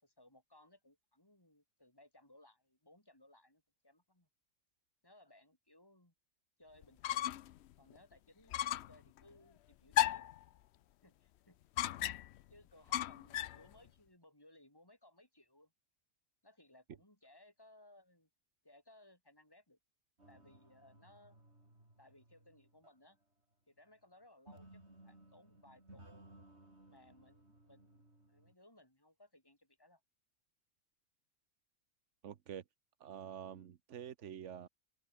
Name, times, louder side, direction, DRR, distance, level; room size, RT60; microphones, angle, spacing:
voice 1, 0.0-4.3 5.0-6.1 6.6-7.3 7.8-10.2 11.0-11.6 11.8-12.0 12.5-15.7 16.4-18.3 18.6-19.8 20.3-21.4 22.0-23.2 23.7-26.1 26.9-30.0, left 1 dB, 20° left, 5.4 m, -64 dB
sound 1, 6.8-7.6 7.9-8.0 8.5-9.0 9.9-10.4 11.8-12.4 12.9-13.6, left 13 dB, 70° left, 0.8 m, -35 dB
sound 2, 20.2-23.2 24.5-28.5, right 1 dB, 65° right, 7.0 m, -61 dB
voice 2, 32.2-32.6 33.0-34.7, right 9 dB, 90° right, 1.3 m, -47 dB
open air
omnidirectional pair, 1.2 m